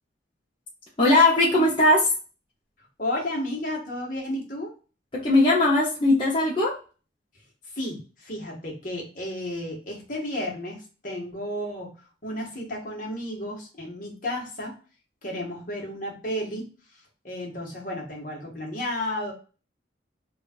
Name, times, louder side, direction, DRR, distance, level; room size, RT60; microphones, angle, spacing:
voice 1, 1.0-2.1 5.1-6.7, left 2 dB, 30° left, -7 dB, 1.0 m, -19 dB
voice 2, 3.0-4.7 7.7-11.9 12.2-14.7 15.2-16.7 17.2-19.3, left 1 dB, 50° left, -2 dB, 1.6 m, -32 dB
3.4 x 2.6 x 4.4 m, 0.35 s
head